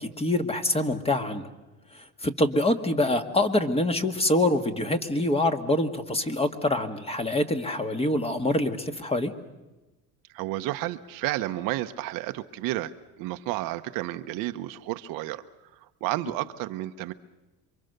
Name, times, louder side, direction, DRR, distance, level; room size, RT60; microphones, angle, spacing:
voice 1, 0.0-1.5 1.9-9.3, left 1 dB, 15° left, 7 dB, 1.8 m, -25 dB
voice 2, 10.3-12.9 13.2-15.4 16.0-17.1, right 16 dB, 80° right, 9 dB, 1.0 m, -31 dB
27.5 x 24.0 x 6.7 m, 1.1 s
cardioid pair, 110°, 34 cm